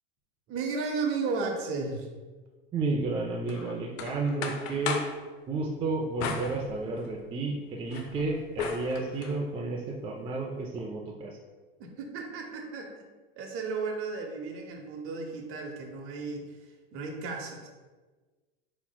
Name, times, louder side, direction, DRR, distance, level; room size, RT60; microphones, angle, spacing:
voice 1, 0.5-2.1 11.8-13.1 13.4-16.6 16.9-17.7, right 4 dB, 45° right, 2 dB, 0.8 m, -34 dB
voice 2, 2.7-5.0 5.5-11.3, right 3 dB, 20° right, -1 dB, 0.4 m, -32 dB
sound 1, 3.5-5.2 6.2-7.2 7.7-9.4, left 5 dB, 60° left, 0.6 m, -36 dB
4.3 x 4.0 x 2.2 m, 1.3 s
supercardioid pair, 105°, 30 cm